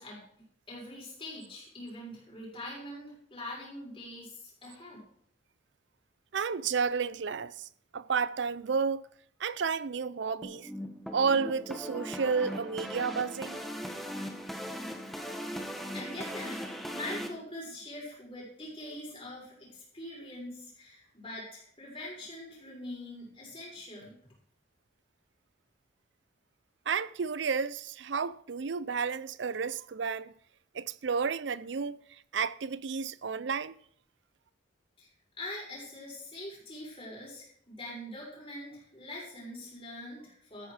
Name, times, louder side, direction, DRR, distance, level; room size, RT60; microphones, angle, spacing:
voice 1, 0.0-5.0 15.7-24.1 35.0-35.1 35.4-40.7, left 1 dB, 25° left, 6.2 m, -43 dB
voice 2, 6.3-7.7 7.9-9.0 9.4-10.7 11.1-13.6 26.9-30.3 30.7-32.0 32.3-33.7, right 5 dB, 65° right, 0.5 m, -31 dB
sound 1, 10.4-17.3, equal, ahead, 1.3 m, -39 dB
14.0 x 9.5 x 4.9 m
head